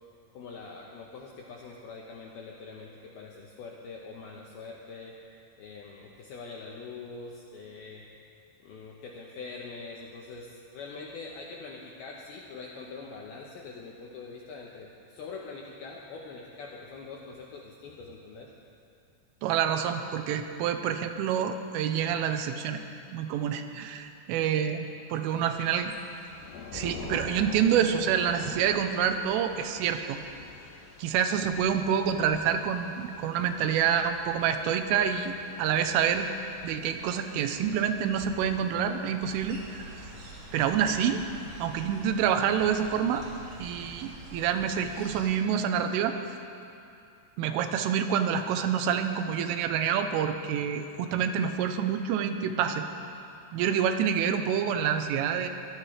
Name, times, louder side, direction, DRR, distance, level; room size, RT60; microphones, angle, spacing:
voice 1, 0.3-5.2 5.6-8.1 8.6-18.5, left 4 dB, 80° left, -1 dB, 2.2 m, -43 dB
voice 2, 19.4-22.8 23.1-25.9 26.7-30.2 31.0-36.3 36.6-40.0 40.5-41.2 41.6-43.2 43.6-46.2 47.4-52.9 53.5-55.5, right 8 dB, 85° right, 7 dB, 3.3 m, -27 dB
Thunder / Rain, 25.3-41.3, left 4 dB, 65° left, 2.8 m, -47 dB
sound 1, 39.2-45.3, right 2 dB, 50° right, 1.4 m, -46 dB
24.0 x 16.5 x 3.3 m, 2.6 s
omnidirectional pair, 5.7 m